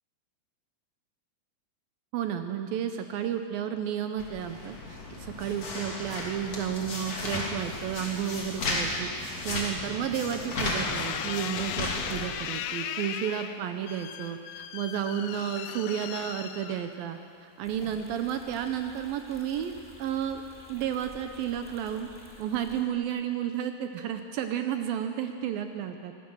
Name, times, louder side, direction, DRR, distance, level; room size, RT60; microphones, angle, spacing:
voice 1, 2.1-4.8 5.1-9.1 9.4-20.4 20.7-22.1 22.4-26.1, right 9 dB, 75° right, 7 dB, 2.3 m, -32 dB
sound 1, 4.2-12.3, left 2 dB, 40° left, 3.8 m, -34 dB
sound 2, 10.8-17.2 17.8-18.3, left 10 dB, 80° left, 1.9 m, -37 dB
sound 3, 17.6-22.8, equal, 5° right, 2.5 m, -51 dB
23.5 x 18.0 x 6.3 m, 2.3 s
omnidirectional pair, 4.8 m